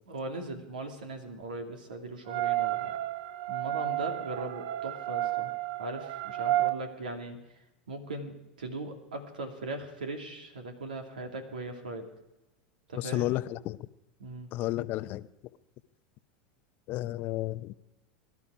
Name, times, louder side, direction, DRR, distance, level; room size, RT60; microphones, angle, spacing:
voice 1, 0.1-2.9 3.5-5.5 5.8-7.6 7.9-12.1 12.9-13.3 14.2-14.5, right 2 dB, 80° right, 2.6 m, -39 dB
sound 1, 2.3-6.8, right 15 dB, 60° right, 0.8 m, -31 dB
voice 2, 13.0-13.8 14.5-15.3 16.9-17.7, left 16 dB, 45° left, 0.7 m, -32 dB
22.0 x 12.0 x 4.9 m
hypercardioid pair, 85°, 5 cm